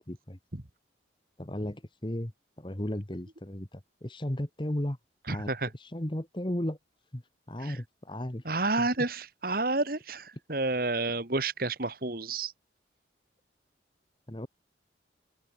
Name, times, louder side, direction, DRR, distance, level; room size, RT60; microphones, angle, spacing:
voice 1, 0.1-0.4 1.4-2.3 2.6-5.0 5.3-6.8 7.1-7.2 7.5-8.4 8.8-8.9 14.3-14.5, left 1 dB, 25° left, 1.7 m, -35 dB
voice 2, 5.3-5.7 8.5-12.5, right 3 dB, 50° right, 2.0 m, -30 dB
open air
head